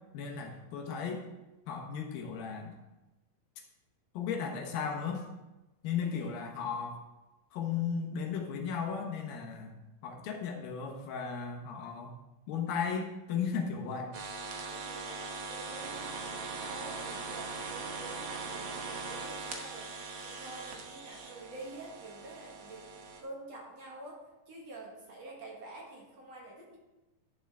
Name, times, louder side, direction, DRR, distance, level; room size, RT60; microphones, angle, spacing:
voice 1, 0.1-1.2 1.7-2.8 4.1-5.2 5.8-7.0 7.5-9.7 10.0-12.1 12.5-14.1, left 6 dB, 80° left, 2 dB, 2.9 m, -35 dB
voice 2, 6.0-6.3 14.7-22.9 23.2-26.8, right 2 dB, 55° right, -2 dB, 2.4 m, -48 dB
sound 1, 14.1-23.2, right 4 dB, 85° right, 1.1 m, -41 dB
11.5 x 7.3 x 3.4 m, 1.0 s
omnidirectional pair, 4.1 m